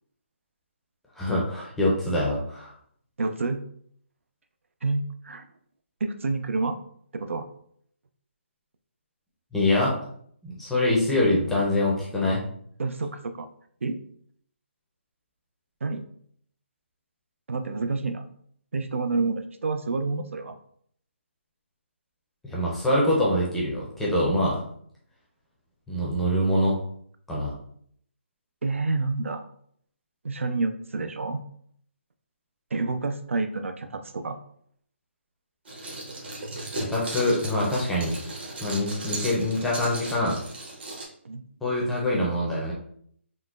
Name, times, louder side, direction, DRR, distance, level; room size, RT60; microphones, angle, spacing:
voice 1, 1.2-2.7 9.5-10.0 10.4-12.4 22.4-24.6 25.9-26.8 27.3-27.6 36.7-38.2 38.6-40.4 41.6-42.7, left 1 dB, 5° left, -6 dB, 0.5 m, -24 dB
voice 2, 3.2-3.6 4.8-5.4 6.0-6.8 7.1-7.4 12.8-13.5 13.8-14.0 15.8-16.0 17.5-18.3 18.7-20.5 28.6-29.4 30.2-31.4 32.7-34.4 41.2-41.4, right 3 dB, 85° right, 8 dB, 0.4 m, -28 dB
sound 1, 35.7-41.1, right 2 dB, 55° right, 1.0 m, -36 dB
3.7 x 2.1 x 2.3 m, 0.64 s
hypercardioid pair, 160°, 7 cm